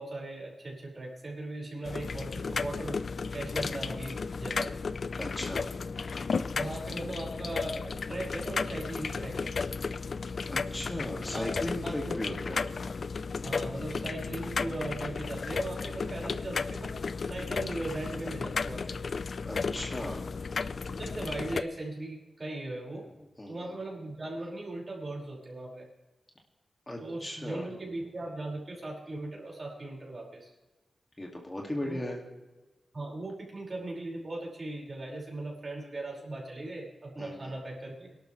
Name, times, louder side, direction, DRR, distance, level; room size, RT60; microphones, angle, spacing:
voice 1, 0.0-3.0 3.3-4.7 6.5-9.5 11.0-11.5 11.8-12.4 13.4-19.0 20.9-23.1 23.5-25.9 27.0-30.5 31.8-32.0 32.9-38.2, right 2 dB, 45° right, -2 dB, 5.3 m, -39 dB
sound 1, 1.8-21.6, left 4 dB, 65° left, 0.5 m, -34 dB
voice 2, 5.1-5.7 10.5-12.7 19.5-20.2 23.2-23.7 26.9-27.7 31.2-32.2 37.2-37.5, left 1 dB, 20° left, 0 dB, 2.2 m, -37 dB
23.5 x 12.0 x 3.3 m, 1.1 s
wide cardioid pair, 80°, 0 cm